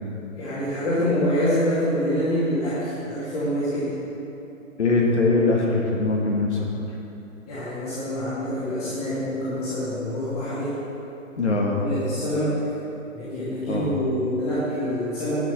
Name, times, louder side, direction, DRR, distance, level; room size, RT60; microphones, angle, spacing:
voice 1, 0.4-4.0 7.5-10.7 11.8-12.5 13.1-15.4, equal, 30° left, -11 dB, 2.6 m, -26 dB
voice 2, 4.8-6.6 11.4-11.8 13.6-13.9, left 3 dB, 55° left, -1 dB, 1.5 m, -21 dB
11.0 x 6.5 x 6.3 m, 2.9 s
figure-of-eight pair, 135°, 41 cm